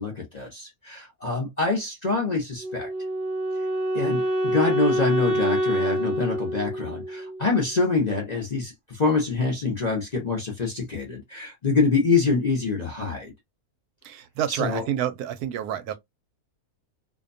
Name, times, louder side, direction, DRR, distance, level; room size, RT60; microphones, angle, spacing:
voice 1, 0.0-2.9 3.9-13.3 14.5-14.8, left 4 dB, 40° left, 0.6 m, -25 dB
Wind instrument woodwind instrument, 2.6-7.7, right 1 dB, 50° right, 0.7 m, -26 dB
voice 2, 14.0-15.9, right 10 dB, 85° right, 1.1 m, -29 dB
2.6 x 2.2 x 2.5 m
omnidirectional pair, 1.6 m